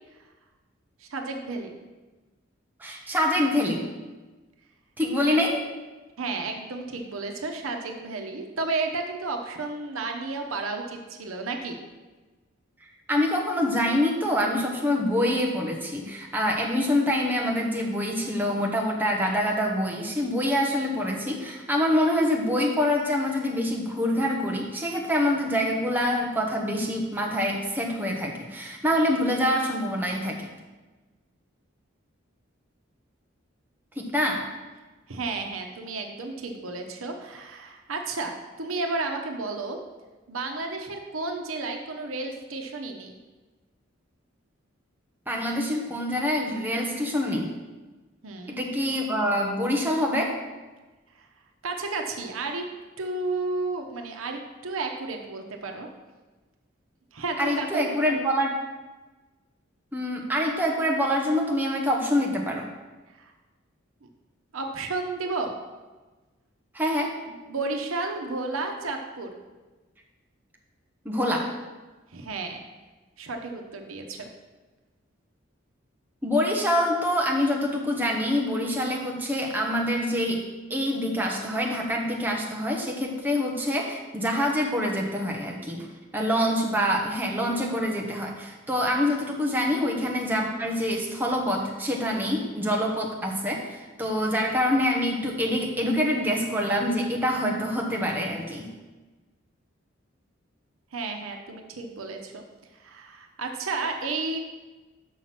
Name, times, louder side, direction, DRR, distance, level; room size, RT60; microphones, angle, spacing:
voice 1, 1.0-1.7 5.2-5.4 6.2-11.8 35.1-39.8 40.3-43.1 48.2-48.6 51.2-51.3 51.6-52.6 53.0-55.9 57.1-57.8 63.2-63.3 64.0-64.1 64.5-65.5 67.4-69.3 72.1-72.6 73.2-74.3 100.9-102.4 102.8-104.4, right 3 dB, 90° right, 3 dB, 0.9 m, -32 dB
voice 2, 2.8-3.9 5.0-5.6 13.1-30.4 34.0-34.4 45.3-47.5 48.5-50.3 57.4-58.5 59.9-62.7 66.7-67.1 71.0-71.5 76.2-80.4 80.7-85.9 86.1-98.7, left 1 dB, 10° right, -1 dB, 1.0 m, -25 dB
6.3 x 5.8 x 5.9 m, 1.2 s
head